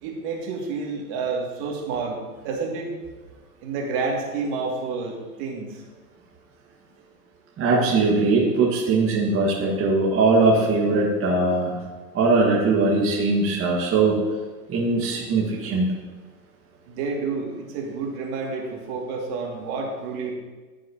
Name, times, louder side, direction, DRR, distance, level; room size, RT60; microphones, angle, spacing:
voice 1, 0.0-2.9 3.6-5.7 16.9-20.3, right 4 dB, 50° right, 0 dB, 2.1 m, -29 dB
voice 2, 7.6-11.8 12.1-14.2 14.7-15.9, right 3 dB, 25° right, -3 dB, 1.6 m, -20 dB
14.5 x 6.4 x 2.8 m, 1.3 s
hypercardioid pair, 115°, 48 cm